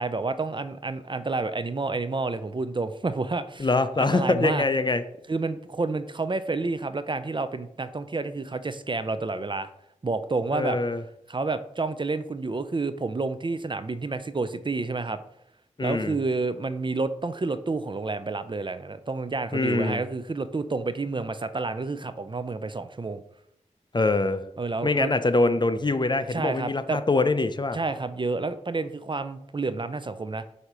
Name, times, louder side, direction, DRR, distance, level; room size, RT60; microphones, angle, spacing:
voice 1, 0.0-3.7 4.0-4.6 5.3-9.7 10.0-10.8 11.3-15.2 15.8-23.2 24.6-25.1 26.3-27.0 27.7-30.5, right 3 dB, 40° right, 12 dB, 0.5 m, -29 dB
voice 2, 3.6-5.0 10.5-11.0 15.8-16.2 19.5-20.0 23.9-24.4 24.8-27.8, left 2 dB, 35° left, 10 dB, 0.5 m, -24 dB
8.0 x 2.8 x 6.0 m, 0.73 s
wide cardioid pair, 75°, 13 cm